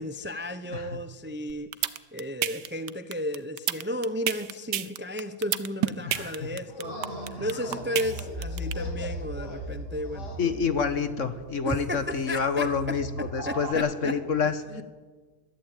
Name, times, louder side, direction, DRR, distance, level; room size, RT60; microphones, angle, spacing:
voice 1, 0.0-7.0 7.4-10.7 11.6-14.2 14.7-14.8, left 1 dB, 10° right, 11 dB, 0.5 m, -34 dB
sound 1, 1.5-8.7, right 11 dB, 85° right, 1.5 m, -28 dB
voice 2, 6.1-6.4 10.4-13.1 13.3-14.5, left 5 dB, 50° left, 11 dB, 1.6 m, -27 dB
sound 2, 6.6-10.4, left 2 dB, 85° left, 3.3 m, -42 dB
sound 3, 6.8-13.7, right 1 dB, 35° right, 2.2 m, -38 dB
22.0 x 14.0 x 9.0 m, 1.4 s
omnidirectional pair, 1.8 m